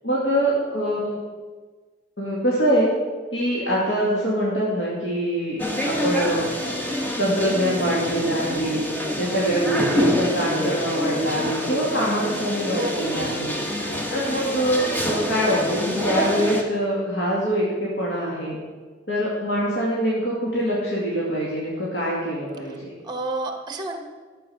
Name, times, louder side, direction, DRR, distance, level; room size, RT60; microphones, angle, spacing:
voice 1, 0.0-1.1 2.2-2.9 3.3-6.5 7.2-8.8 9.2-13.6 14.1-18.6 19.1-22.9, equal, 80° left, -6 dB, 2.4 m, -24 dB
sound 1, 5.6-16.6, equal, 10° left, 1.3 m, -26 dB
voice 2, 11.2-11.7 12.7-13.2 22.6-22.8 23.0-24.0, right 2 dB, 25° right, 5 dB, 1.3 m, -31 dB
12.0 x 7.6 x 5.8 m, 1.4 s
head